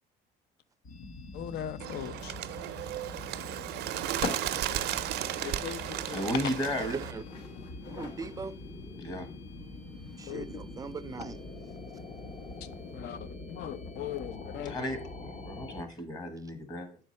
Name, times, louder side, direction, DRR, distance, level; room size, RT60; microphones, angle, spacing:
sound 1, 0.8-15.8, left 2 dB, 50° left, 1.0 m, -44 dB
voice 1, 1.3-2.3 4.2-5.1 5.4-6.3 10.3-10.5 12.9-14.8, left 10 dB, 75° left, 0.5 m, -40 dB
sound 2, 1.5-12.9, left 3 dB, 90° left, 1.2 m, -46 dB
Bird, 1.8-7.1, right 13 dB, 75° right, 0.5 m, -35 dB
voice 2, 6.1-7.0 9.0-9.3 14.6-17.0, equal, 25° left, 1.1 m, -34 dB
voice 3, 6.9-7.2 7.9-8.5 10.2-11.4, right 5 dB, 20° right, 0.4 m, -39 dB
6.7 x 4.5 x 4.2 m
cardioid pair, 110°, 17 cm